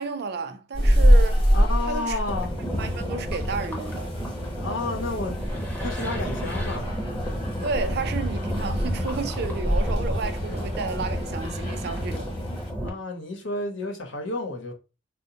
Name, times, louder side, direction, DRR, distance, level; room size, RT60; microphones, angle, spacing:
voice 1, 0.0-1.5 1.9-2.2 2.8-4.1 7.6-12.3, right 4 dB, 55° right, 0.5 m, -32 dB
sound 1, 0.7-12.7, equal, 30° left, 1.0 m, -26 dB
voice 2, 1.5-2.6 4.6-5.3 5.8-6.9 12.8-14.7, left 2 dB, 85° left, 1.0 m, -31 dB
sound 2, 2.3-12.9, equal, 10° left, 0.6 m, -31 dB
4.1 x 2.1 x 2.8 m
head